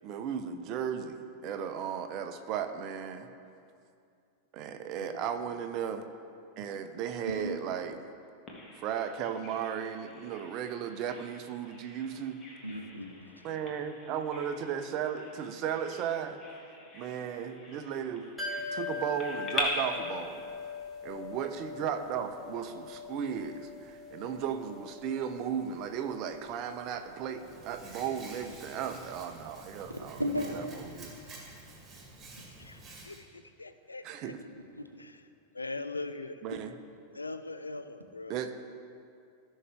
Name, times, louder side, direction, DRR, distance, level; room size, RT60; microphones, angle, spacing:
voice 1, 0.0-3.3 4.5-6.1 6.6-8.1 8.7-12.4 13.4-16.4 16.9-18.3 18.7-20.4 21.0-31.1 34.0-34.4 36.4-36.7 38.3-38.5, right 8 dB, 40° right, 8 dB, 0.7 m, -35 dB
Bird vocalization bird call bird song, 8.5-19.6, left 4 dB, 30° left, 1.7 m, -45 dB
voice 2, 12.6-13.4 29.9-30.6 34.8-34.9, equal, 85° right, 5 dB, 0.7 m, -35 dB
sound 1, 18.4-30.0 30.2-30.3, left 5 dB, 5° left, 2.4 m, -43 dB
Hands, 27.4-33.2, right 2 dB, 20° right, 2.4 m, -49 dB
voice 3, 32.6-34.3 35.0-35.3 35.5-36.4 37.1-38.4, left 3 dB, 80° left, 9 dB, 0.4 m, -41 dB
15.0 x 6.4 x 3.4 m, 2.4 s
figure-of-eight pair, 90°, 0 cm